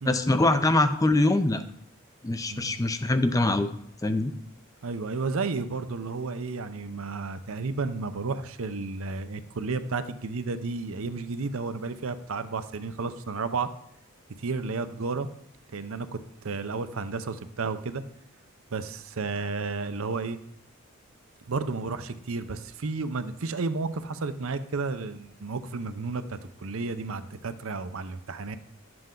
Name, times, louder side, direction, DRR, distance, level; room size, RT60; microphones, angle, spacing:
voice 1, 0.1-1.6 2.2-3.7 4.0-4.3, left 2 dB, 15° left, 10 dB, 0.5 m, -23 dB
voice 2, 2.5-2.8 4.8-13.7 14.4-15.3 15.7-16.2 16.4-18.0 18.7-20.4 21.5-28.6, right 4 dB, 70° right, 11 dB, 0.6 m, -32 dB
11.5 x 7.8 x 3.8 m, 0.72 s
head